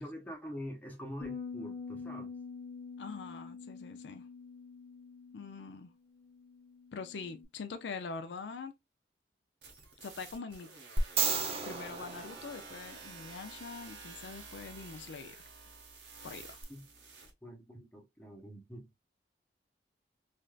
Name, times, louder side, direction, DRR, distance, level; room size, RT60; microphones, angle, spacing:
voice 1, 0.0-2.3 16.7-16.8 17.4-18.9, equal, 10° left, 0.9 m, -45 dB
sound 1, 1.2-7.5, left 5 dB, 45° left, 0.9 m, -46 dB
voice 2, 3.0-4.3 5.3-5.9 6.9-8.7 10.0-10.7 11.6-15.4 16.2-16.6, left 4 dB, 80° left, 0.4 m, -44 dB
sound 2, 9.6-17.3, right 4 dB, 80° right, 1.0 m, -50 dB
sound 3, 11.0-13.2 16.6-16.7, right 4 dB, 35° right, 0.6 m, -33 dB
3.2 x 2.6 x 2.3 m
head